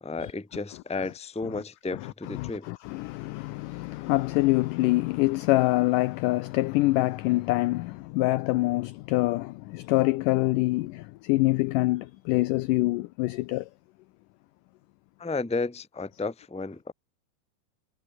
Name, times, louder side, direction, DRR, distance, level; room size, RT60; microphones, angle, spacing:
voice 1, 0.0-2.7 15.2-16.9, left 3 dB, 5° left, 1.2 m, -33 dB
voice 2, 2.4-13.7, left 20 dB, 85° left, 1.9 m, -25 dB
omnidirectional pair, 4.3 m